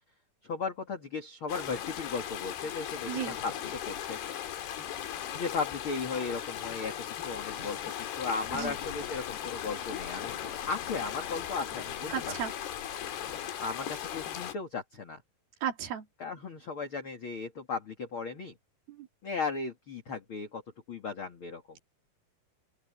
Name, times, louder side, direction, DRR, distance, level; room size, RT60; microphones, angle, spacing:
voice 1, 0.4-4.2 5.3-10.4 10.7-12.1 13.6-15.2 16.2-18.5 19.2-20.6 20.9-21.8, left 4 dB, 40° left, 2.5 m, -36 dB
sound 1, 1.5-14.6, left 10 dB, 90° left, 4.0 m, -38 dB
voice 2, 3.1-3.4 8.5-8.8 12.1-12.5 15.6-16.1 18.9-19.1, right 9 dB, 70° right, 4.2 m, -34 dB
Car passing by / Engine, 8.4-13.4, left 8 dB, 65° left, 3.4 m, -49 dB
open air
omnidirectional pair, 4.5 m